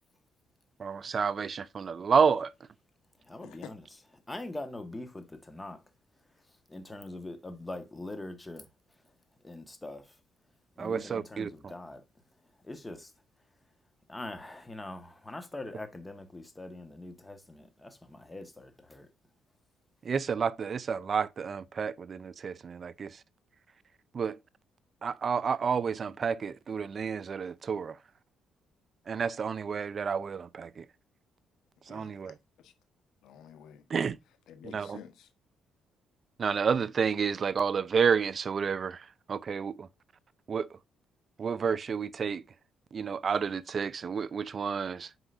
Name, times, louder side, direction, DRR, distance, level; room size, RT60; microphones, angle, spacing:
voice 1, 0.8-2.5 10.8-11.7 20.0-23.2 24.1-24.4 25.0-28.0 29.1-30.9 31.9-32.4 33.9-34.2 34.7-35.0 36.4-39.9 40.5-40.8 41.4-42.4 42.9-45.2, right 6 dB, 45° right, 0.4 m, -30 dB
voice 2, 3.2-3.8 4.3-5.8 6.2-10.2 10.7-13.1 14.1-19.1, left 2 dB, 15° left, 1.3 m, -43 dB
voice 3, 31.9-32.7 33.2-33.8 34.5-35.3, left 8 dB, 85° left, 1.1 m, -50 dB
7.8 x 4.9 x 2.5 m
cardioid pair, 90°, 0 cm